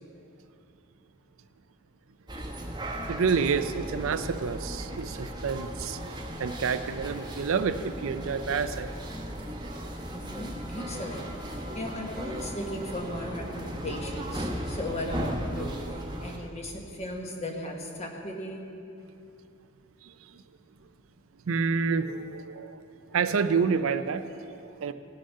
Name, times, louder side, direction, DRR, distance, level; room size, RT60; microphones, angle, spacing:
sound 1, 2.3-16.4, equal, 20° right, 1.0 m, -36 dB
voice 1, 3.1-8.9 20.0-20.4 21.5-24.9, right 5 dB, 70° right, 11 dB, 0.4 m, -29 dB
voice 2, 10.1-18.7, left 1 dB, 30° left, 1 dB, 1.3 m, -37 dB
18.0 x 6.4 x 5.5 m, 2.6 s
head